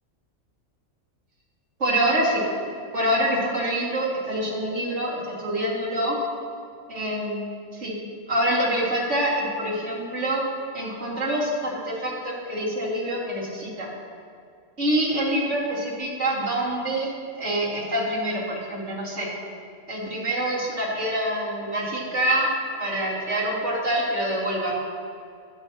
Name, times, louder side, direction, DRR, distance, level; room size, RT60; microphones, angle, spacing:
voice 1, 1.8-2.4 2.9-6.2 6.9-7.4 7.7-8.0 8.3-10.4 10.7-13.9 14.8-17.1 17.4-19.3 19.9-22.5 22.8-24.7, right 1 dB, 55° right, -7 dB, 2.7 m, -26 dB
12.0 x 8.9 x 3.0 m, 2.3 s
omnidirectional pair, 1.4 m